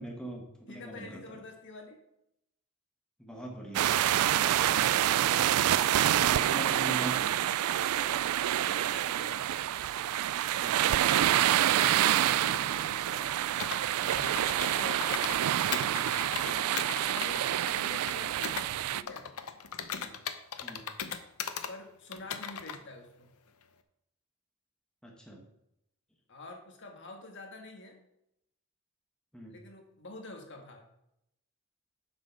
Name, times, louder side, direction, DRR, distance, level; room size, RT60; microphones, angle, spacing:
voice 1, 0.0-1.2 3.2-5.1 6.2-7.3 10.6-10.9 20.0-20.1 20.6-20.8 25.0-25.4 29.3-29.5, right 1 dB, 5° left, -1 dB, 1.2 m, -42 dB
voice 2, 0.7-2.0 8.0-8.3 8.6-9.5 12.1-13.4 14.0-15.3 16.3-19.3 21.7-23.3 26.3-28.0 29.5-30.9, left 2 dB, 55° left, 2 dB, 1.6 m, -47 dB
sound 1, 3.7-19.0, right 12 dB, 75° right, 0.3 m, -27 dB
Computer keyboard, 13.6-15.4 15.7-18.7 19.1-21.7 22.1-22.8, left 7 dB, 75° left, 0.8 m, -38 dB
7.8 x 6.3 x 5.7 m, 0.81 s
head